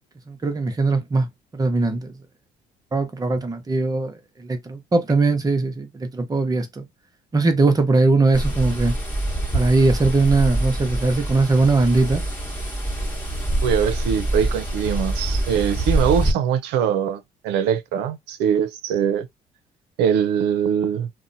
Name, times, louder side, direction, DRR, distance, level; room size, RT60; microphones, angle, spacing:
voice 1, 0.3-1.3 1.5-2.1 2.9-4.1 4.4-6.8 7.3-9.0 9.5-12.2, right 3 dB, 20° right, 0.7 m, -20 dB
sound 1, 8.3-16.3, right 1 dB, 10° left, 1.1 m, -25 dB
voice 2, 13.6-19.3 20.0-21.1, right 8 dB, 90° right, 0.5 m, -22 dB
2.7 x 2.1 x 2.5 m
cardioid pair, 110°, 17 cm